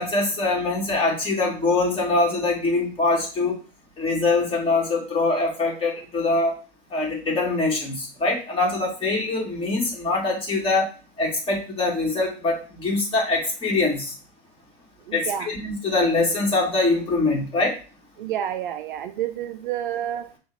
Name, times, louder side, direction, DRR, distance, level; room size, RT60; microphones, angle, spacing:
voice 1, 0.0-3.6 4.0-6.5 6.9-10.9 11.2-14.1 15.1-17.8, left 3 dB, 15° left, -1 dB, 1.7 m, -23 dB
voice 2, 15.1-15.5 18.2-20.3, right 10 dB, 55° right, 11 dB, 0.4 m, -29 dB
6.0 x 2.4 x 3.4 m, 0.36 s
hypercardioid pair, 120°, 31 cm